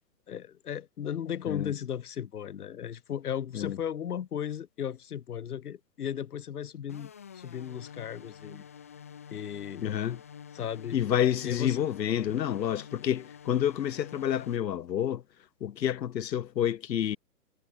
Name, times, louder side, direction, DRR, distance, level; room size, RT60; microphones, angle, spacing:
voice 1, 0.3-8.6 9.3-9.8 10.5-11.0 11.4-11.9, left 9 dB, 65° left, 1.2 m, -36 dB
sound 1, 6.9-14.6, left 8 dB, 10° left, 0.6 m, -48 dB
voice 2, 9.8-10.2 10.9-15.2 15.6-17.2, left 10 dB, 90° left, 0.8 m, -29 dB
hypercardioid pair, 160°, 49 cm